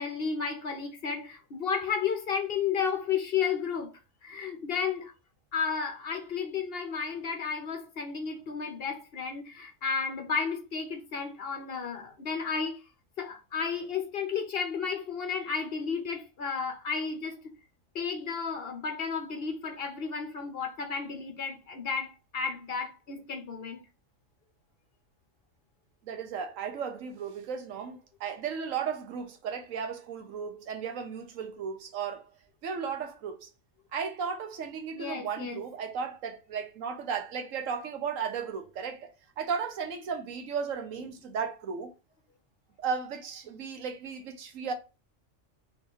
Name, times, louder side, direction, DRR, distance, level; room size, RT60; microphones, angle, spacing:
voice 1, 0.0-3.9 4.2-5.1 5.5-12.8 13.2-17.4 17.9-23.8 34.9-35.6, left 6 dB, 55° left, 1.0 m, -32 dB
voice 2, 26.0-32.3 32.6-33.5 33.9-41.9 42.8-44.7, right 6 dB, 85° right, 1.2 m, -35 dB
3.6 x 3.1 x 4.6 m
omnidirectional pair, 1.3 m